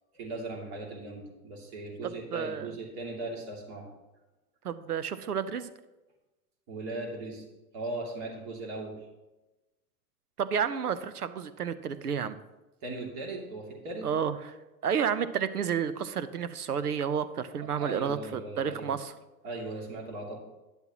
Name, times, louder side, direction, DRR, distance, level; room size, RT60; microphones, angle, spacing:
voice 1, 0.1-3.9 6.7-7.5 7.7-9.0 12.8-14.1 17.6-19.0 19.4-20.4, right 2 dB, 45° right, 0 dB, 2.8 m, -38 dB
voice 2, 2.3-2.7 4.6-5.7 10.4-12.4 14.0-14.4 14.8-19.1, right 7 dB, 80° right, 14 dB, 0.8 m, -31 dB
11.5 x 10.0 x 3.0 m, 1.1 s
figure-of-eight pair, 90°, 45 cm